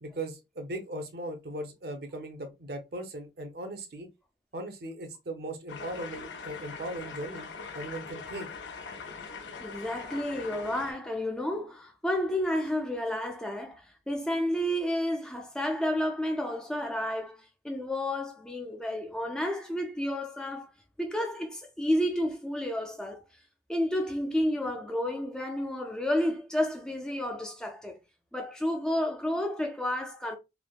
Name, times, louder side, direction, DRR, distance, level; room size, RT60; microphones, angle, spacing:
voice 1, 0.0-4.1 4.5-7.5 7.7-8.5, right 1 dB, 60° right, 0.6 m, -38 dB
sound 1, 5.7-10.9, left 5 dB, 90° left, 0.5 m, -42 dB
voice 2, 9.6-20.7 21.0-23.2 23.7-28.0 28.3-30.4, left 1 dB, 5° left, 0.4 m, -31 dB
3.2 x 2.1 x 2.3 m
head